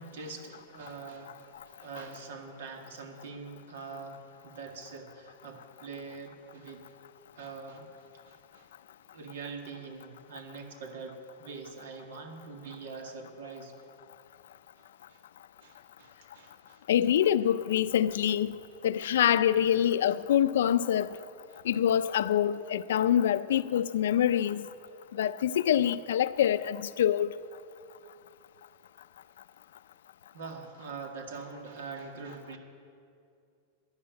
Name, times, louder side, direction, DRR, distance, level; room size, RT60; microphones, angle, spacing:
voice 1, 0.0-6.9 7.4-8.7 9.1-13.9 15.1-15.2 15.6-16.8 21.5-21.6 30.3-32.6, right 4 dB, 90° right, 1.9 m, -44 dB
voice 2, 16.9-18.6 18.8-21.2 21.7-24.7 25.2-27.3, left 10 dB, 90° left, 0.4 m, -25 dB
11.5 x 11.0 x 9.6 m
supercardioid pair, 165°, 0 cm